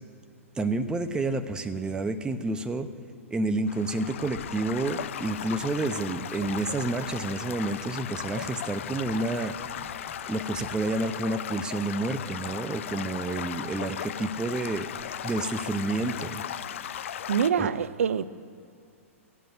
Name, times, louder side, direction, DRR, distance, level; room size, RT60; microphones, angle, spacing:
voice 1, 0.6-2.9 3.3-9.6 10.3-14.9 15.2-16.4 17.6-17.7, right 2 dB, 10° right, 0.7 m, -29 dB
Stream / Gurgling / Trickle dribble, 3.7-17.5, left 9 dB, 60° left, 0.6 m, -37 dB
Writing, 5.5-5.8 6.4-10.8, left 7 dB, 30° left, 1.5 m, -51 dB
voice 2, 17.3-18.3, right 7 dB, 70° right, 0.6 m, -25 dB
16.0 x 7.8 x 9.4 m
hypercardioid pair, 115°, 8 cm